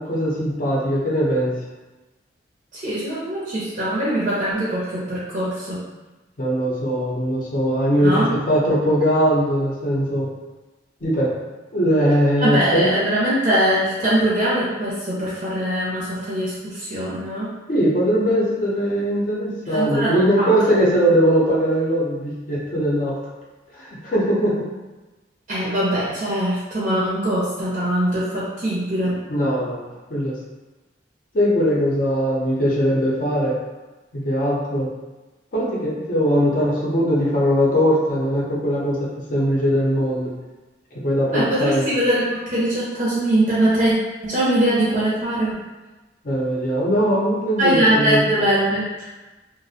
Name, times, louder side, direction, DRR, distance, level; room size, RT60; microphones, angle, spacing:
voice 1, 0.0-1.5 6.4-10.3 11.0-11.3 11.7-12.9 17.7-23.1 23.7-24.6 29.3-29.8 30.1-30.3 31.3-33.5 34.1-34.9 35.5-40.3 41.0-41.9 46.2-48.2, equal, 45° left, -4 dB, 0.6 m, -20 dB
voice 2, 2.7-5.8 8.0-8.3 12.4-17.5 19.7-20.5 25.5-29.2 41.3-43.9 44.2-45.6 47.6-49.1, right 1 dB, 40° right, -8 dB, 0.5 m, -22 dB
2.4 x 2.0 x 2.7 m, 1.1 s
head